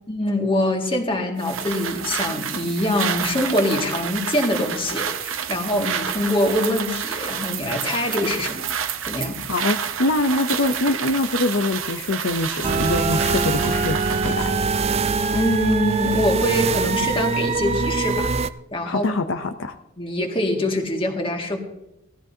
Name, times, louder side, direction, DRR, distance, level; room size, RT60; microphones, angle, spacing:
voice 1, 0.1-8.7 9.0-9.4 15.3-18.3 18.7-19.1 20.0-21.6, left 1 dB, 25° left, 2 dB, 2.0 m, -24 dB
sound 1, 1.4-14.4, right 8 dB, 75° right, 0.8 m, -29 dB
voice 2, 9.5-14.6 18.8-19.8, left 2 dB, 60° left, 7 dB, 0.6 m, -24 dB
Engine, 11.8-14.6 14.8-15.5 15.9-16.5 16.8-16.9, right 2 dB, 15° right, 2.0 m, -41 dB
sound 2, 12.6-18.5, right 4 dB, 30° right, 0.4 m, -23 dB
18.0 x 13.5 x 2.8 m, 0.88 s
head